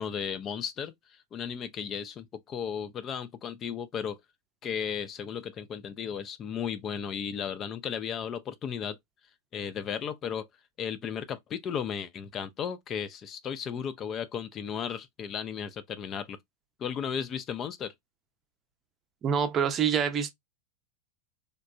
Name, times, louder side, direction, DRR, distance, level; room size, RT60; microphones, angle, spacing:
voice 1, 0.0-4.2 4.6-9.0 9.5-10.5 10.8-16.4 16.8-17.9, left 7 dB, 30° left, 0.3 m, -35 dB
voice 2, 19.2-20.3, right 7 dB, 25° right, 0.5 m, -26 dB
3.2 x 2.1 x 2.4 m
figure-of-eight pair, 90°, 0 cm